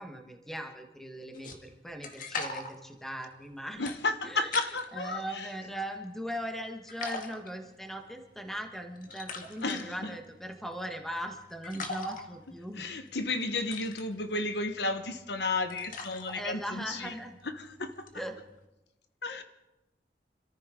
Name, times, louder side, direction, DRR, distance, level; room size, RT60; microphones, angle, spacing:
voice 1, 0.0-3.8 4.2-12.8 16.3-17.4 18.1-18.4, equal, ahead, 4 dB, 1.3 m, -39 dB
sound 1, 1.3-5.1 5.6-6.6 6.9-18.6, left 3 dB, 50° left, 1.6 m, -43 dB
voice 2, 3.8-5.5 9.6-10.2 12.8-17.1 17.6-18.1 19.2-19.4, left 3 dB, 70° left, 8 dB, 1.1 m, -33 dB
26.5 x 14.0 x 3.7 m, 0.97 s
head